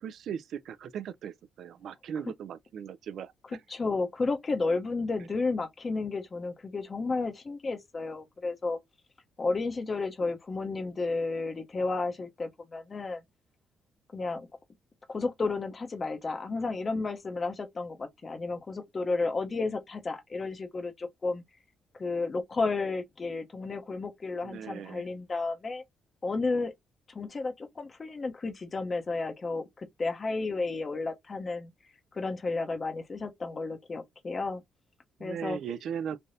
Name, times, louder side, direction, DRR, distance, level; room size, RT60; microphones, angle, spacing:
voice 1, 0.0-3.3 24.4-25.0 35.2-36.2, right 8 dB, 70° right, 0.3 m, -38 dB
voice 2, 3.7-8.8 9.4-13.2 14.1-14.5 15.1-21.4 22.0-25.8 26.2-26.7 27.1-31.7 32.1-34.6 35.2-35.6, left 3 dB, 35° left, 0.7 m, -32 dB
3.2 x 2.6 x 2.5 m
cardioid pair, 90°, 0 cm